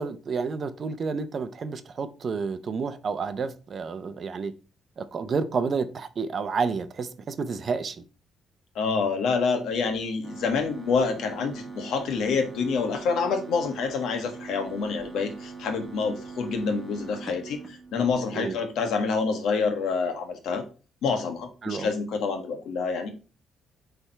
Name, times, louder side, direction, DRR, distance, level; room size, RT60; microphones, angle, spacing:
voice 1, 0.0-4.5 5.0-8.0 18.3-18.6 21.6-21.9, right 5 dB, 35° right, 0.6 m, -30 dB
voice 2, 8.7-20.6 21.0-23.1, left 5 dB, 75° left, 1.4 m, -27 dB
sound 1, 10.2-18.3, right 4 dB, 10° right, 1.2 m, -42 dB
8.4 x 3.4 x 4.4 m
cardioid pair, 160°, 0 cm